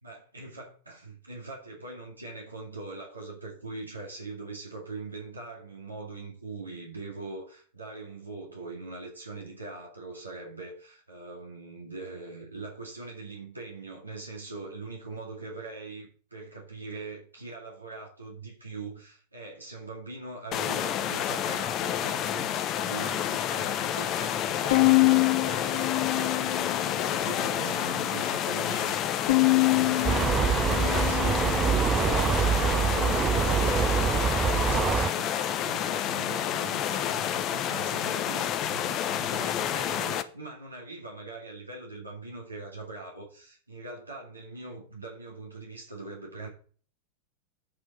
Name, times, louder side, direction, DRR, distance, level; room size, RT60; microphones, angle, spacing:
voice 1, 0.0-29.0 29.2-33.9 34.4-46.5, right 3 dB, 80° right, 2.1 m, -41 dB
sound 1, 20.5-40.2, left 10 dB, 35° left, 0.8 m, -29 dB
Bowed string instrument, 24.7-27.1 27.5-28.3 29.3-31.8, left 23 dB, 55° left, 0.5 m, -25 dB
sound 2, 30.0-35.1, right 7 dB, 25° right, 0.3 m, -25 dB
8.7 x 4.6 x 7.3 m
figure-of-eight pair, 90°, 0 cm